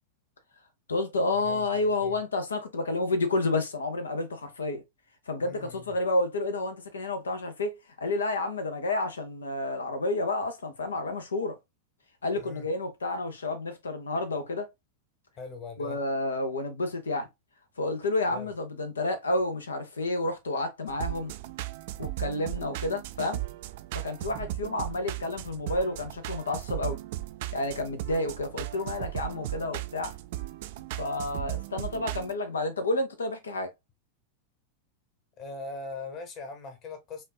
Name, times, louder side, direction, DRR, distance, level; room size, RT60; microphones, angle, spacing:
voice 1, 0.9-4.8 5.3-11.6 12.2-14.7 15.8-17.3 17.8-21.3 22.0-23.4 23.9-27.0 27.5-30.2 31.0-33.7, left 2 dB, 70° left, 0.8 m, -30 dB
voice 2, 5.4-6.0 12.3-12.7 15.4-16.0 18.3-18.5 24.3-24.6 35.4-37.2, left 3 dB, 35° left, 1.4 m, -41 dB
sound 1, 20.9-32.3, right 15 dB, 50° right, 0.4 m, -37 dB
5.5 x 2.5 x 2.3 m
figure-of-eight pair, 90°, 0 cm